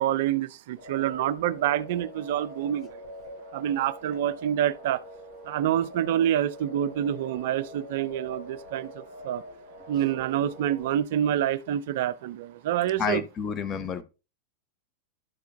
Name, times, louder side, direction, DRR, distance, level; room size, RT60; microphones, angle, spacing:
voice 1, 0.0-2.9 3.5-5.0 5.5-8.9 9.2-9.4 9.9-13.2, right 11 dB, 50° right, 0.3 m, -27 dB
sound 1, 0.8-10.9, equal, 55° left, 5.1 m, -44 dB
voice 2, 13.0-14.0, left 6 dB, 25° left, 0.7 m, -29 dB
11.5 x 6.8 x 2.2 m
figure-of-eight pair, 90°, 0 cm